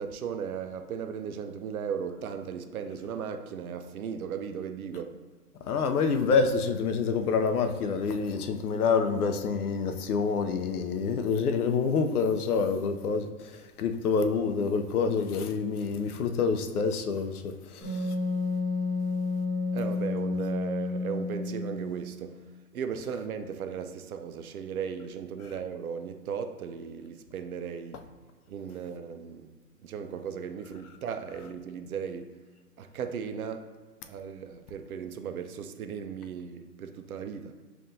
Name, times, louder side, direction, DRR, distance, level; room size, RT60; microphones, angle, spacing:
voice 1, 0.0-5.2 19.7-22.4 22.7-28.0 28.5-29.5 29.8-32.4 32.8-33.7 34.0-37.6, right 7 dB, 65° right, 0.5 m, -36 dB
voice 2, 5.6-13.3 13.8-18.1, left 5 dB, 65° left, 0.6 m, -27 dB
Wind instrument woodwind instrument, 17.8-22.2, left 3 dB, ahead, 0.3 m, -31 dB
5.6 x 2.6 x 2.7 m
hypercardioid pair, 150°, 48 cm